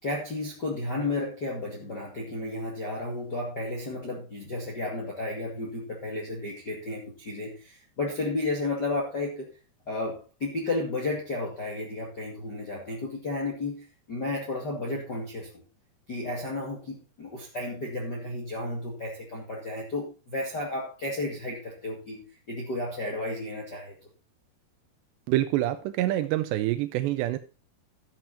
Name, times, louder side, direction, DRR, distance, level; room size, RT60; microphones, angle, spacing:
voice 1, 0.0-9.5 9.9-15.5 16.1-23.9, left 2 dB, 35° left, -2 dB, 1.8 m, -33 dB
voice 2, 25.3-27.4, right 14 dB, 85° right, 10 dB, 2.8 m, -26 dB
13.0 x 7.6 x 4.2 m, 0.32 s
omnidirectional pair, 4.9 m